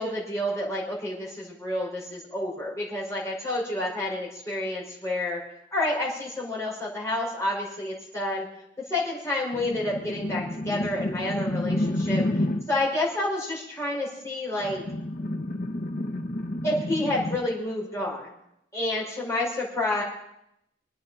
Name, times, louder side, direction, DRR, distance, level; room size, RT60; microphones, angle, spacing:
voice 1, 0.0-5.4 5.7-8.5 8.8-14.8 16.6-18.3 18.7-20.0, left 1 dB, 15° left, -5 dB, 5.0 m, -29 dB
sound 1, 9.5-12.8 14.6-17.4, left 1 dB, 55° left, 1.5 m, -30 dB
26.0 x 9.4 x 4.2 m, 0.80 s
head